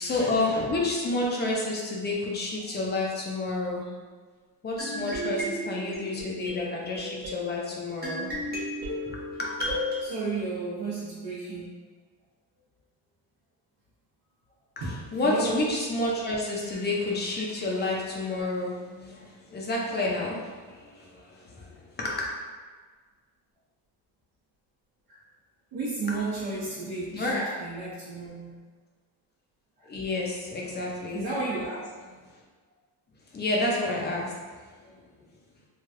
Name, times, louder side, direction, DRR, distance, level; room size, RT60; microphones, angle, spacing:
voice 1, 0.0-3.9 4.6-8.5 9.0-9.7 15.1-22.2 27.1-27.5 29.8-31.3 33.3-34.3 34.8-35.0, left 2 dB, 25° left, -2 dB, 0.5 m, -30 dB
sound 1, 4.8-10.0, equal, 25° right, 0.7 m, -34 dB
voice 2, 10.0-11.9 14.8-15.7 25.1-25.2 25.7-28.7 29.8-29.9 31.1-31.8, right 3 dB, 65° right, -10 dB, 1.0 m, -33 dB
3.1 x 2.3 x 2.6 m, 1.5 s
cardioid pair, 130°, 42 cm